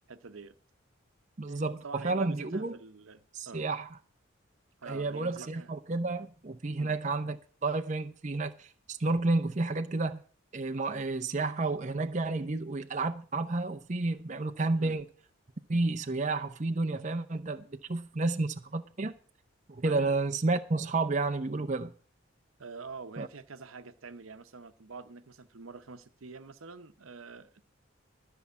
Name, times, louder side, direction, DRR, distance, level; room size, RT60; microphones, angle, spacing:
voice 1, 0.1-0.5 1.5-3.6 4.8-5.7 6.8-7.0 14.7-15.0 19.8-20.1 22.6-27.6, right 4 dB, 90° right, 0.9 m, -46 dB
voice 2, 1.4-2.8 3.3-3.9 4.9-7.4 7.6-10.2 10.5-15.0 15.7-19.1 19.7-21.9 23.2-23.3, right 3 dB, 35° right, 0.6 m, -31 dB
13.0 x 5.6 x 8.2 m
head